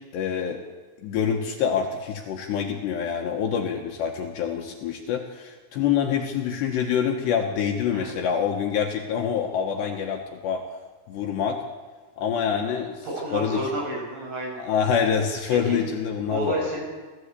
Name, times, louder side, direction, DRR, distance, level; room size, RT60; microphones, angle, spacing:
voice 1, 0.1-0.6 1.0-10.6 11.1-11.6 12.2-13.1 13.3-13.6 14.6-16.7, left 7 dB, 65° left, 3 dB, 3.1 m, -26 dB
voice 2, 13.0-14.6 15.7-15.8 16.3-16.8, right 1 dB, 60° right, -1 dB, 9.8 m, -30 dB
28.0 x 14.5 x 8.4 m, 1.3 s
omnidirectional pair, 5.9 m